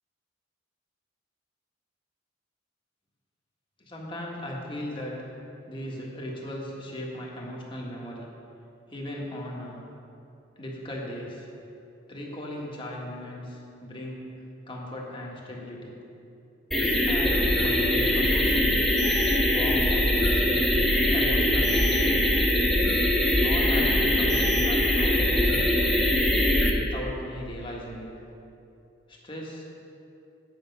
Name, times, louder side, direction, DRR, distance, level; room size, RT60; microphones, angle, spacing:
voice 1, 3.8-5.2 5.7-8.3 8.9-9.8 10.6-11.5 12.1-14.2 14.7-16.0 16.7-19.0 19.5-22.3 23.2-26.0 26.7-28.1 29.1-29.6, left 1 dB, 25° left, -2 dB, 1.5 m, -37 dB
sound 1, 16.7-26.7, left 1 dB, ahead, 1.3 m, -22 dB
8.9 x 7.9 x 5.4 m, 2.7 s
head